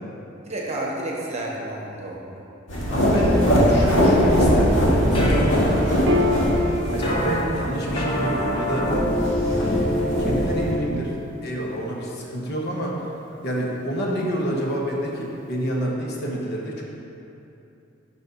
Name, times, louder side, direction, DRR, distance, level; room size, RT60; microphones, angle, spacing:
voice 1, 0.4-2.4 2.8-3.3, right 1 dB, 35° right, -2 dB, 1.0 m, -31 dB
sound 1, 2.7-10.7, equal, 85° left, 1.8 m, -21 dB
voice 2, 2.9-6.1 6.9-8.9 9.4-11.1 11.4-13.0 13.4-16.8, equal, 55° left, -2 dB, 1.2 m, -28 dB
sound 2, 3.3-3.6 5.1-5.4 7.0-7.4 8.0-10.8, equal, 25° left, 0.9 m, -25 dB
Piano, 6.1-13.0, left 2 dB, 65° right, 0.6 m, -32 dB
6.7 x 5.4 x 5.4 m, 2.9 s
head